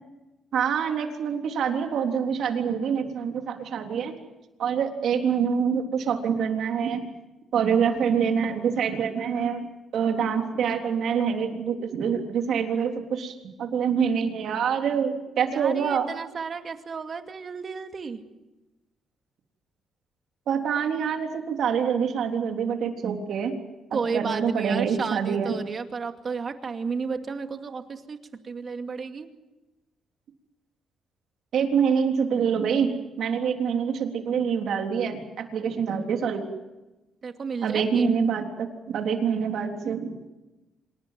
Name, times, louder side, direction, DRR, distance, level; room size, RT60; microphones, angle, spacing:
voice 1, 0.5-4.1 4.6-7.0 7.5-9.6 9.9-16.1 20.5-23.5 23.9-25.5 31.5-32.9 33.2-36.5 37.6-40.1, right 7 dB, 70° right, 4 dB, 3.6 m, -26 dB
voice 2, 15.5-18.2 23.9-28.2 28.4-29.3 37.2-38.1, right 5 dB, 45° right, 6 dB, 2.4 m, -32 dB
26.5 x 19.5 x 7.7 m, 1.0 s
cardioid pair, 90°, 0 cm